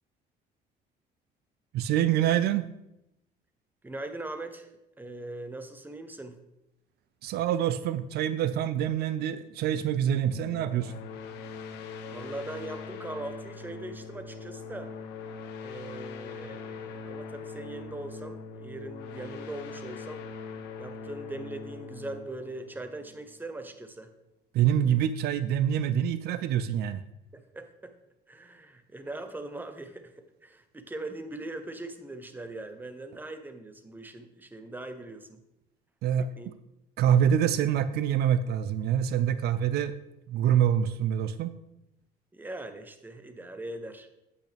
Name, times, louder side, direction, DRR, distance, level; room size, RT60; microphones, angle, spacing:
voice 1, 1.7-2.7 7.2-10.9 24.5-27.0 36.0-36.3 37.0-39.9 40.3-41.6, right 9 dB, 75° right, 13 dB, 0.5 m, -26 dB
voice 2, 3.8-6.4 12.1-14.9 15.6-20.2 20.8-24.1 27.3-27.9 28.3-35.4 36.2-36.5 42.3-44.1, right 2 dB, 10° right, 8 dB, 0.9 m, -41 dB
sound 1, 10.3-23.6, left 5 dB, 90° left, 1.0 m, -42 dB
8.8 x 8.3 x 3.4 m, 0.88 s
cardioid pair, 110°, 17 cm